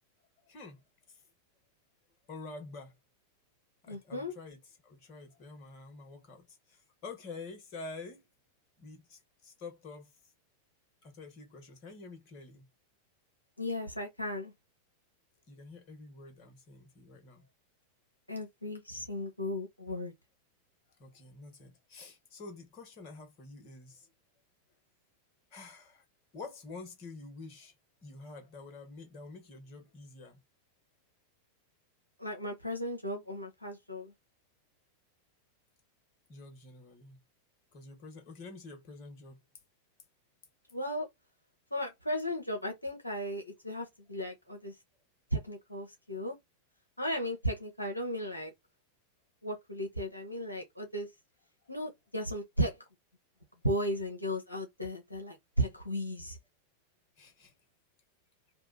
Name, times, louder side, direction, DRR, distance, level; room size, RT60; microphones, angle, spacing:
voice 1, 0.4-0.8 1.1-1.2 2.3-2.9 3.8-8.3 8.8-10.1 11.0-12.7 15.5-17.5 21.0-24.1 25.5-26.0 26.3-27.7 28.0-30.4 36.3-37.2 37.7-39.4 57.2-57.5, left 3 dB, 40° left, 1.3 m, -48 dB
voice 2, 3.9-4.3 13.6-14.5 18.3-20.1 32.2-34.1 40.7-41.1 41.7-44.7 45.3-46.4 47.0-48.5 49.4-51.1 51.7-52.8 53.6-56.4, equal, 85° left, 0.7 m, -35 dB
2.7 x 2.4 x 3.9 m
figure-of-eight pair, 90°, 0 cm